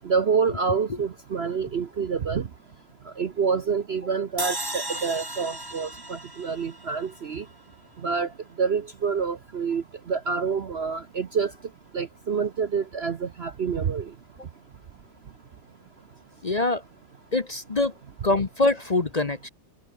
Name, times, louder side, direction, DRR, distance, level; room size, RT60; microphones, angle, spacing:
voice 1, 0.1-2.5 3.2-7.4 8.0-8.3 8.6-9.8 10.1-11.5 11.9-14.0, right 5 dB, 55° right, 0.7 m, -27 dB
sound 1, 4.4-7.6, right 1 dB, 10° right, 2.2 m, -35 dB
voice 2, 16.4-16.8 17.3-17.9 18.2-19.5, left 2 dB, 35° left, 0.7 m, -24 dB
omnidirectional pair, 2.0 m